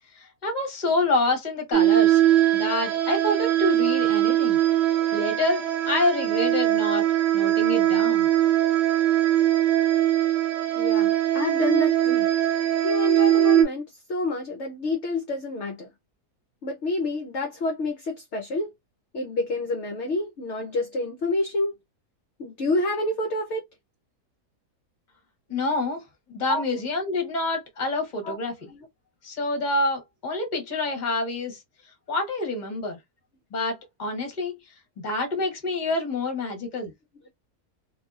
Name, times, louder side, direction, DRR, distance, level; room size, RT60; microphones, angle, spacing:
voice 1, 0.1-2.2 2.5-4.6 5.1-7.0 7.3-8.3 25.5-26.0 26.3-28.5 29.2-31.6 32.1-33.0 33.5-34.6 35.0-36.9, left 2 dB, 35° left, 1.0 m, -27 dB
sound 1, 1.7-13.6, right 12 dB, 60° right, 0.7 m, -21 dB
voice 2, 10.8-12.3 12.8-15.9 16.6-18.7 19.1-21.7 22.4-23.6 26.5-26.6 28.2-28.4 28.7-28.8, left 2 dB, 60° left, 0.8 m, -28 dB
2.7 x 2.6 x 2.3 m
omnidirectional pair, 1.7 m